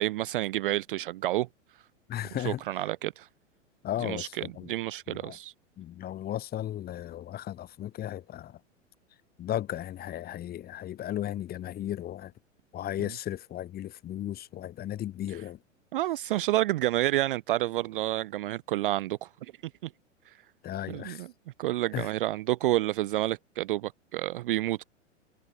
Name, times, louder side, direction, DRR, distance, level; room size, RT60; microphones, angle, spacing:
voice 1, 0.0-1.5 2.4-3.3 4.0-4.3 4.7-5.5 15.9-19.5 19.8-19.9 20.3-20.4 20.9-21.3 21.6-24.8, right 15 dB, 45° right, 0.4 m, -29 dB
voice 2, 2.1-2.6 3.8-4.7 5.1-5.4 5.8-8.6 9.4-12.3 12.7-15.6 20.6-21.2 21.9-22.1, left 12 dB, 25° left, 1.8 m, -35 dB
figure-of-eight pair, 100°, 37 cm